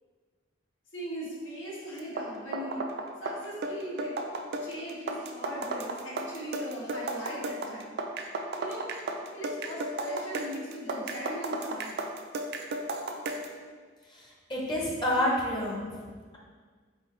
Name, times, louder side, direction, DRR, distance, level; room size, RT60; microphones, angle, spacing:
voice 1, 0.9-2.9 3.2-4.1 4.6-8.0 8.6-8.9 9.3-12.0, equal, 75° left, -5 dB, 1.2 m, -39 dB
sound 1, 2.0-13.6, right 2 dB, 55° right, 0.4 m, -34 dB
voice 2, 14.1-15.9, left 1 dB, 25° left, -3 dB, 0.7 m, -29 dB
4.0 x 3.8 x 3.1 m, 1.5 s
head